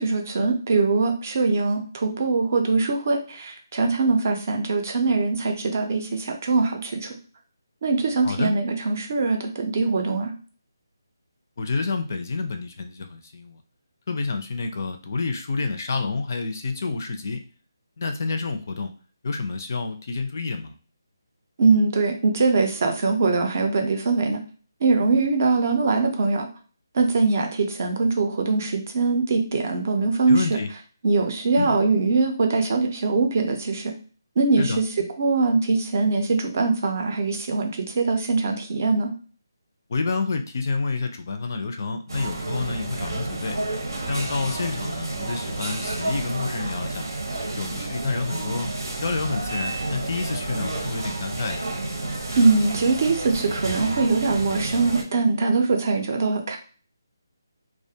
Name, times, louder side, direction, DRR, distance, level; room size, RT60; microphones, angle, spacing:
voice 1, 0.0-7.1 7.8-10.3 21.6-24.4 24.8-26.5 26.9-30.4 31.0-33.9 34.4-34.8 35.2-39.1 52.4-56.6, right 3 dB, 40° right, 4 dB, 0.5 m, -22 dB
voice 2, 11.6-13.6 14.1-17.4 18.0-18.9 19.2-20.8 30.3-30.7 31.6-31.7 34.6-34.8 39.9-43.6 44.1-47.0 47.6-48.7 49.0-51.6, left 4 dB, 45° left, 6 dB, 0.4 m, -28 dB
sound 1, 42.1-55.0, right 2 dB, 80° right, 0.8 m, -30 dB
2.4 x 2.2 x 2.7 m, 0.38 s
hypercardioid pair, 165°, 2 cm